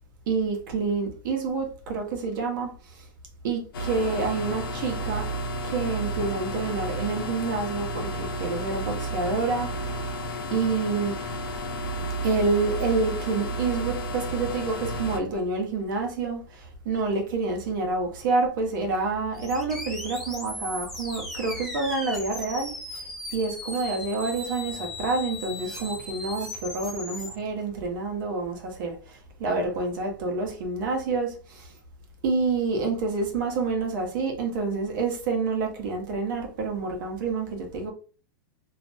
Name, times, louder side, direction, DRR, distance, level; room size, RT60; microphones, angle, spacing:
voice 1, 0.3-3.0 3.4-5.3 5.6-10.0 10.5-11.1 12.2-22.7 23.3-31.7 32.2-37.9, right 3 dB, 65° right, 3 dB, 0.9 m, -28 dB
sound 1, 3.7-15.2, right 1 dB, 75° left, 0.6 m, -32 dB
sound 2, 19.3-27.3, left 2 dB, ahead, 0.8 m, -37 dB
2.5 x 2.1 x 2.6 m, 0.38 s
supercardioid pair, 135°, 11 cm